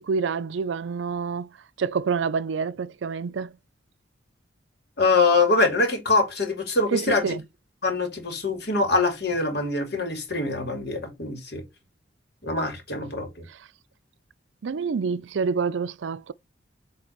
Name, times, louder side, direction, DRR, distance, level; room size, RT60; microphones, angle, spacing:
voice 1, 0.0-1.5 1.8-3.5 6.9-7.4 13.5-13.6 14.6-16.3, right 5 dB, 80° right, 0.4 m, -27 dB
voice 2, 5.0-7.3 7.8-11.6 12.4-13.4, left 3 dB, 60° left, 2.6 m, -24 dB
8.0 x 3.4 x 4.5 m
head